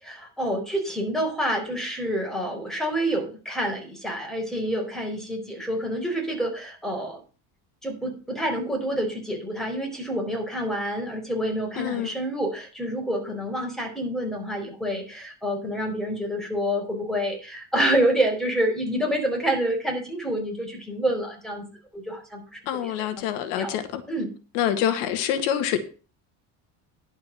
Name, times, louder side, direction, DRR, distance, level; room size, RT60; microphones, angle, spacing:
voice 1, 0.0-7.2 7.8-21.6 21.9-23.3 23.6-23.8 24.1-24.3, right 1 dB, ahead, 4.3 m, -28 dB
voice 2, 11.8-12.1 22.7-24.0 24.5-25.8, left 10 dB, 90° left, 1.8 m, -26 dB
11.0 x 5.2 x 7.6 m
cardioid pair, 120°, 44 cm